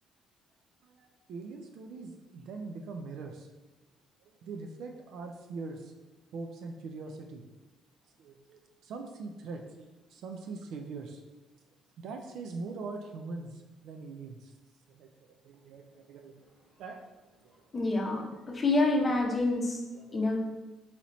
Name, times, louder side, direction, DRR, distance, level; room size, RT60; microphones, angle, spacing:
voice 1, 0.8-3.5 4.4-5.9 6.3-7.4 8.2-11.2 12.0-14.5 14.9-15.1 15.4-17.0 17.4-17.5 18.0-18.9 19.9-20.4, right 4 dB, 65° right, 4 dB, 0.4 m, -42 dB
voice 2, 17.7-19.8 20.1-20.4, left 2 dB, 20° left, 0 dB, 0.7 m, -27 dB
4.2 x 4.1 x 3.0 m, 1.1 s
cardioid pair, 170°, 0 cm